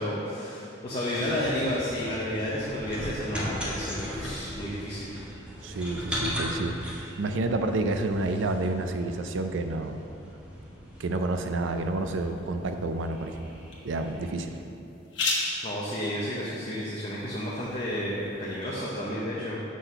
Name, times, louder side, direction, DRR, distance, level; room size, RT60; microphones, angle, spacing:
voice 1, 0.0-5.1 15.6-19.6, left 1 dB, 30° left, -7 dB, 0.7 m, -31 dB
sound 1, 1.1-14.6, equal, 5° right, 0.9 m, -39 dB
voice 2, 5.6-6.8 7.2-10.0 11.0-13.6 13.8-14.5, right 2 dB, 85° right, 7 dB, 0.4 m, -29 dB
sound 2, 11.1-18.6, left 2 dB, 75° left, 1.1 m, -38 dB
6.3 x 3.9 x 5.4 m, 2.8 s
head